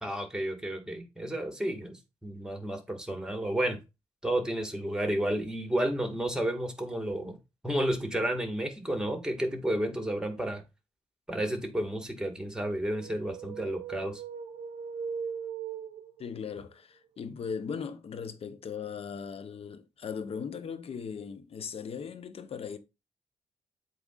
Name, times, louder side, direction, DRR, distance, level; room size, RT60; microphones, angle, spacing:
voice 1, 0.0-3.8 4.2-7.4 7.6-10.6 11.3-14.2, right 1 dB, 5° right, 1.6 m, -31 dB
sound 1, 12.8-16.4, right 7 dB, 70° right, 0.5 m, -39 dB
voice 2, 16.2-22.8, left 6 dB, 55° left, 0.6 m, -38 dB
7.8 x 2.8 x 2.4 m
hypercardioid pair, 40°, 12 cm